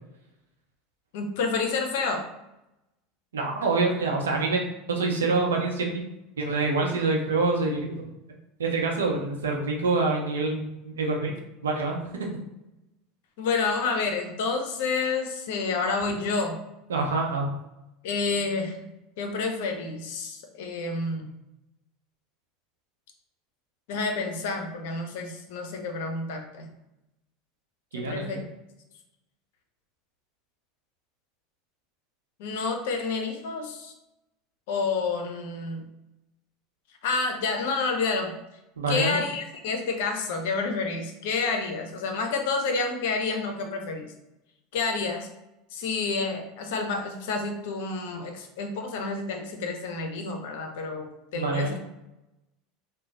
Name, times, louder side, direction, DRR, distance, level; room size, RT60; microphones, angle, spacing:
voice 1, 1.1-2.3 13.4-16.6 18.0-18.8 19.2-21.3 23.9-26.7 27.9-28.4 32.4-33.9 34.7-35.8 37.0-38.3 38.9-44.1 44.7-45.3 45.7-51.8, left 4 dB, 70° left, 4 dB, 0.6 m, -29 dB
voice 2, 3.3-4.6 4.9-6.0 6.4-8.1 8.6-11.3 11.6-12.3 16.9-17.5 27.9-28.4 38.8-39.2 51.3-51.8, right 3 dB, 85° right, 0 dB, 0.7 m, -26 dB
3.0 x 2.1 x 4.0 m, 0.93 s
hypercardioid pair, 85°, 0 cm